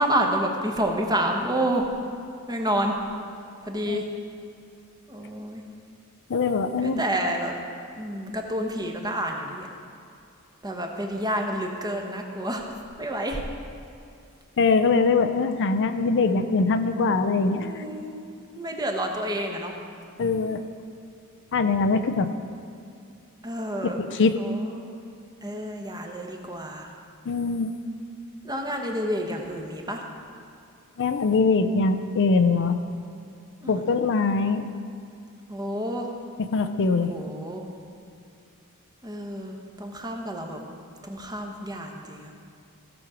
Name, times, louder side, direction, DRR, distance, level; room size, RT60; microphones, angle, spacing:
voice 1, 0.0-1.9 2.5-2.9 3.6-4.1 5.1-5.6 6.8-7.5 8.0-9.7 10.6-13.4 17.4-18.2 18.5-19.7 23.4-24.0 24.4-25.0 25.4-26.9 28.4-30.1 33.6-33.8 35.5-36.1 37.1-37.6 39.0-40.6 41.0-42.3, right 1 dB, 15° right, 2 dB, 1.0 m, -29 dB
voice 2, 6.3-7.0 14.6-17.8 20.2-20.6 21.5-22.3 23.8-24.3 27.3-27.7 31.0-32.8 33.7-34.7 36.4-37.1, left 4 dB, 55° left, 9 dB, 0.5 m, -22 dB
16.0 x 6.2 x 5.0 m, 2.5 s
head